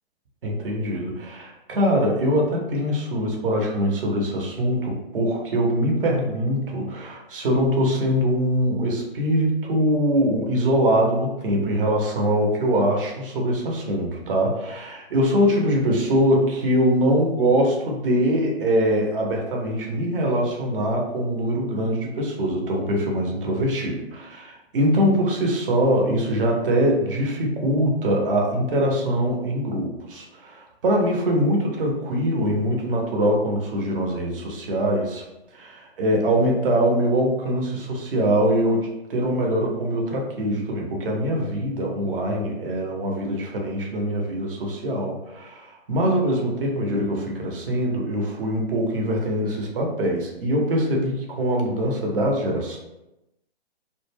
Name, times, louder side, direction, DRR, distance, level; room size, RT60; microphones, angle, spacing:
voice 1, 0.4-35.2 35.5-52.8, equal, 55° right, 0 dB, 0.8 m, -23 dB
2.3 x 2.2 x 3.3 m, 0.94 s
hypercardioid pair, 135°, 32 cm